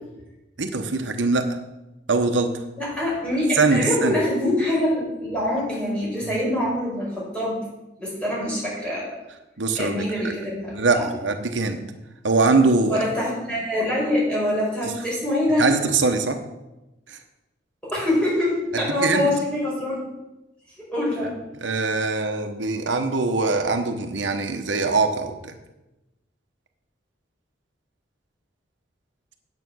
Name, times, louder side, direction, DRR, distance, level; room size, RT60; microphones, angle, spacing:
voice 1, 0.6-1.4 2.1-2.6 3.5-4.2 9.6-10.3 10.7-11.8 12.2-13.0 15.6-16.4 17.1-17.2 19.0-19.3 21.6-25.5, right 3 dB, 85° right, 6 dB, 1.0 m, -22 dB
voice 2, 2.8-7.6 8.0-9.1 9.7-11.1 12.9-15.7 17.8-20.0 20.8-21.4, left 1 dB, 5° left, -6 dB, 4.8 m, -24 dB
9.4 x 7.9 x 6.2 m, 0.99 s
head